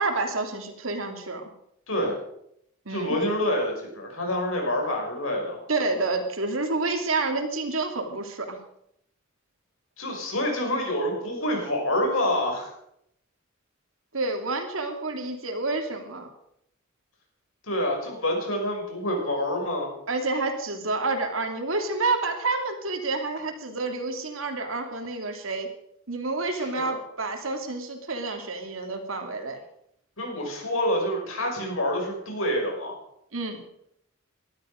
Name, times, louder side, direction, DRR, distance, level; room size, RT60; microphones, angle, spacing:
voice 1, 0.0-1.5 2.9-3.2 5.7-8.6 14.1-16.3 20.1-25.7 26.1-29.6 33.3-33.6, right 3 dB, 80° right, 5 dB, 2.8 m, -29 dB
voice 2, 2.9-5.6 10.0-12.7 17.6-19.9 26.6-27.0 30.2-32.9, left 1 dB, 80° left, 1 dB, 6.3 m, -27 dB
18.5 x 12.5 x 5.2 m, 0.74 s
head